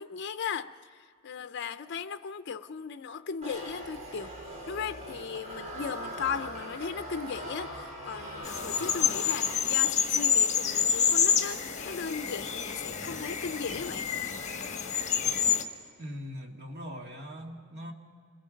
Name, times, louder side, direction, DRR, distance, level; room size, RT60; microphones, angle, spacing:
voice 1, 0.0-4.3 4.7-14.1, left 6 dB, 55° left, 0.5 m, -37 dB
sound 1, 3.4-10.0, equal, 35° right, 5.1 m, -41 dB
sound 2, 8.4-15.6, left 7 dB, 35° left, 1.3 m, -28 dB
voice 2, 16.0-17.9, equal, 55° right, 2.0 m, -41 dB
27.5 x 21.5 x 5.2 m
head